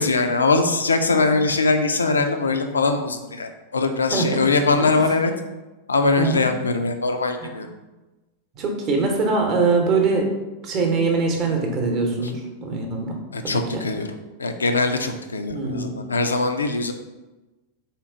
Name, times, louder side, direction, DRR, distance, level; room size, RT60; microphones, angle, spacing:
voice 1, 0.0-5.3 5.9-7.7 13.3-14.1 14.4-16.9, left 3 dB, 75° left, 7 dB, 0.3 m, -21 dB
voice 2, 8.6-10.3 10.6-13.8 15.5-16.0, right 4 dB, 35° right, 2 dB, 0.8 m, -23 dB
3.6 x 2.9 x 3.5 m, 1.1 s
figure-of-eight pair, 90°, 0 cm